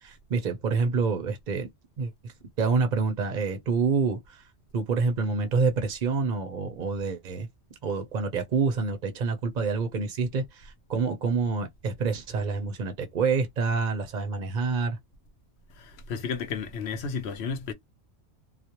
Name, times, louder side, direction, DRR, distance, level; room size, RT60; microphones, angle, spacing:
voice 1, 0.0-1.7 2.0-4.4 4.7-7.5 7.8-15.0, right 4 dB, 50° right, 0.6 m, -27 dB
voice 2, 15.8-17.7, left 5 dB, 70° left, 0.9 m, -32 dB
2.4 x 2.0 x 2.8 m
omnidirectional pair, 1.2 m